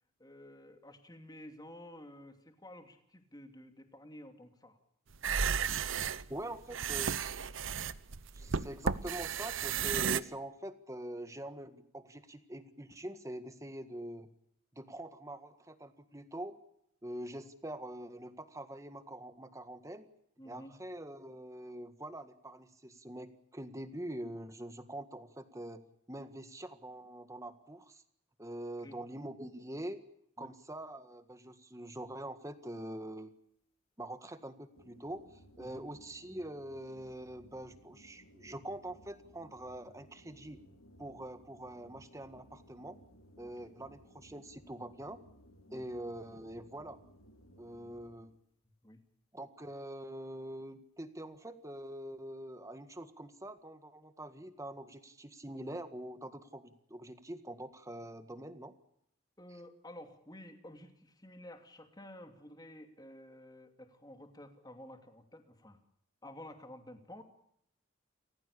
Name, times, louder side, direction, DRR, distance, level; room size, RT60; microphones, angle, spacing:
voice 1, 0.2-4.8 20.4-20.8 28.8-29.0 30.4-30.5 35.6-35.8 43.4-43.7 45.7-45.8 48.8-49.0 59.4-65.8 66.2-67.2, left 1 dB, 20° left, 6 dB, 2.8 m, -52 dB
sound 1, 5.1-10.2, right 6 dB, 70° right, 0.9 m, -33 dB
voice 2, 6.3-7.2 8.3-14.3 14.7-16.6 17.0-20.1 20.4-25.8 26.1-28.0 28.4-30.0 30.4-33.3 34.0-40.6 41.0-43.0 43.4-45.2 45.7-47.0 47.6-48.3 49.3-58.7, right 1 dB, 15° right, 9 dB, 1.7 m, -44 dB
sound 2, 34.7-48.4, equal, 90° left, 2.3 m, -60 dB
29.5 x 15.5 x 8.4 m, 0.74 s
head